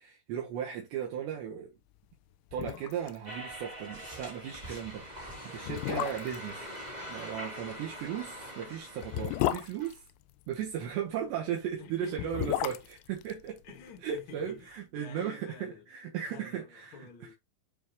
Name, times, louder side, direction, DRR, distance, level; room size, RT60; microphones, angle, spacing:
voice 1, 0.0-1.7 2.5-5.0 5.4-6.7 7.1-10.0 10.5-12.8 13.1-13.6 14.0-17.1, right 9 dB, 75° right, 3.1 m, -36 dB
sound 1, 2.1-2.2 2.5-3.2 3.4-3.5 3.9-4.1 4.8-4.9 5.6-6.5 8.0-10.7 12.0-14.2 14.5-14.6, left 14 dB, 85° left, 2.7 m, -34 dB
sound 2, 3.2-9.9, equal, 25° right, 0.9 m, -43 dB
voice 2, 11.8-12.8 13.6-15.9 16.2-17.3, left 5 dB, 45° left, 1.6 m, -50 dB
9.5 x 3.5 x 3.0 m
omnidirectional pair, 5.7 m